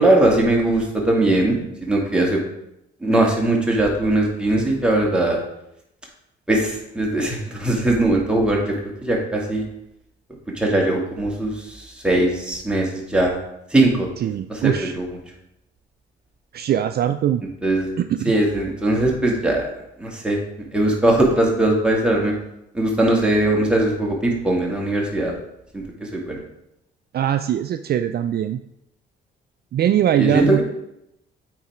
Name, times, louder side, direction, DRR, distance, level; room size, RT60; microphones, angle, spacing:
voice 1, 0.0-1.6 1.8-2.4 3.0-5.4 6.5-9.6 10.6-13.4 13.7-14.1 14.5-15.1 17.6-17.9 18.3-19.7 20.0-20.4 20.7-22.3 22.7-25.3 25.7-25.8 26.1-26.4 30.2-30.6, right 1 dB, 5° right, -2 dB, 2.2 m, -20 dB
voice 2, 14.2-14.9 16.5-17.4 18.0-18.3 27.1-28.6 29.7-30.6, right 10 dB, 55° right, 9 dB, 0.4 m, -21 dB
8.6 x 4.0 x 5.0 m, 0.81 s
cardioid pair, 90°, 20 cm